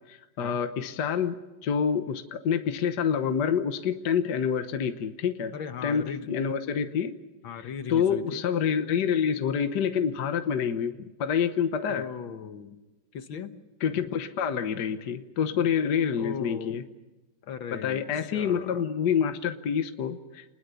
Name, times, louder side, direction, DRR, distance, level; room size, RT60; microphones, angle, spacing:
voice 1, 0.1-5.5 5.8-7.1 7.6-12.1 13.8-16.8 17.7-20.4, left 7 dB, 60° left, 8 dB, 1.6 m, -27 dB
voice 2, 5.5-6.3 7.4-8.4 11.9-12.8 13.1-13.5 16.2-16.8 17.5-18.8, left 7 dB, 75° left, 8 dB, 2.1 m, -37 dB
27.5 x 21.0 x 7.0 m, 1.1 s
omnidirectional pair, 2.1 m